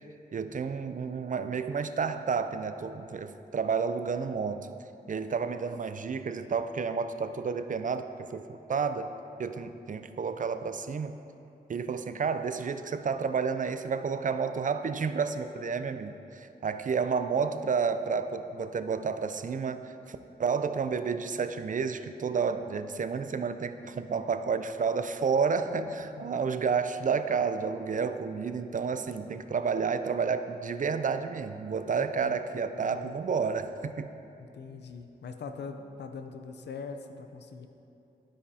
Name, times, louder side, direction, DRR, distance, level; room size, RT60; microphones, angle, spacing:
voice 1, 0.3-4.7 5.1-9.1 9.4-11.2 11.7-34.1, right 5 dB, 50° right, 10 dB, 0.4 m, -30 dB
voice 2, 25.7-26.4 32.0-32.4 32.8-33.2 34.5-37.7, left 5 dB, 80° left, 7 dB, 0.5 m, -42 dB
12.5 x 5.0 x 2.8 m, 2.8 s
cardioid pair, 45°, 17 cm